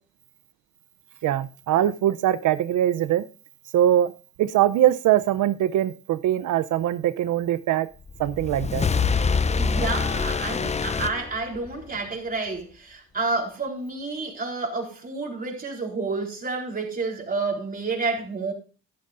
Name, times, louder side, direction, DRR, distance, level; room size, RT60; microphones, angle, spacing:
voice 1, 1.2-3.2 3.7-4.1 4.4-7.9 8.2-8.9, right 12 dB, 75° right, 0.6 m, -22 dB
sound 1, 8.1-11.9, left 5 dB, 20° left, 0.5 m, -25 dB
voice 2, 9.6-18.5, right 3 dB, 30° right, 4.2 m, -29 dB
12.5 x 11.5 x 2.6 m
cardioid pair, 90°, 30 cm